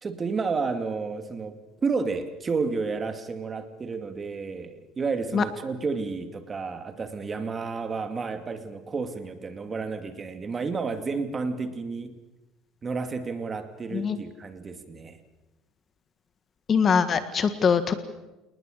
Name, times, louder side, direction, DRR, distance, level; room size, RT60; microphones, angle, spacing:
voice 1, 0.0-1.5 1.8-12.2 12.8-15.2, right 4 dB, 25° right, 8 dB, 2.4 m, -31 dB
voice 2, 16.7-17.9, left 6 dB, 35° left, 11 dB, 1.7 m, -22 dB
28.5 x 20.0 x 6.7 m, 1.0 s
cardioid pair, 120°, 0 cm